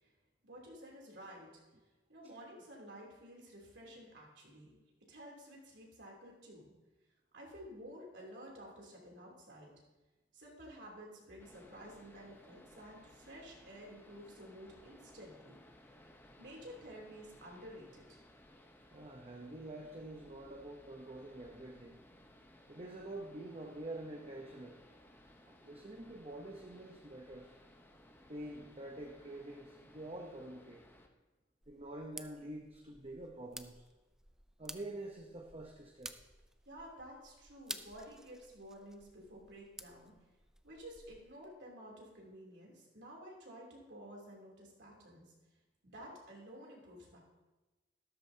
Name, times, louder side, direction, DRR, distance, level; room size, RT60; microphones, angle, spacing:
voice 1, 0.4-1.5 2.1-4.8 5.1-6.7 7.3-9.7 10.3-15.6 16.4-18.2 36.6-40.1 40.6-45.3 45.8-47.2, equal, 85° right, -2 dB, 3.1 m, -52 dB
sound 1, 11.4-31.1, left 1 dB, 15° left, 0.9 m, -61 dB
voice 2, 18.9-22.0 22.7-24.8 25.5-27.5 28.3-30.8 31.7-33.8 34.6-36.2, right 1 dB, 35° right, 2 dB, 0.8 m, -47 dB
sound 2, 31.6-41.3, right 1 dB, 5° right, 0.4 m, -53 dB
13.0 x 12.5 x 2.8 m, 1.2 s
head